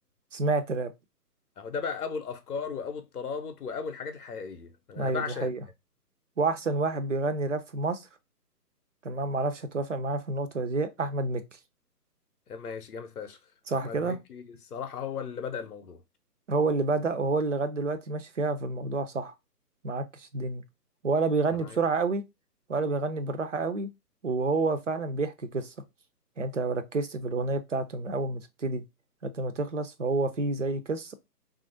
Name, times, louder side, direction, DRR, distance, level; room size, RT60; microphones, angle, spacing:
voice 1, 0.3-0.9 5.0-5.6 6.4-8.1 9.0-11.4 13.7-14.2 16.5-19.3 19.8-20.6 21.0-22.2 22.7-23.9 24.2-25.7 26.4-28.8 29.2-31.1, right 3 dB, 50° right, 0.5 m, -29 dB
voice 2, 1.6-5.5 12.5-13.4 13.7-16.0 21.6-21.8, left 6 dB, 65° left, 0.6 m, -36 dB
2.8 x 2.4 x 2.5 m
figure-of-eight pair, 140°, 49 cm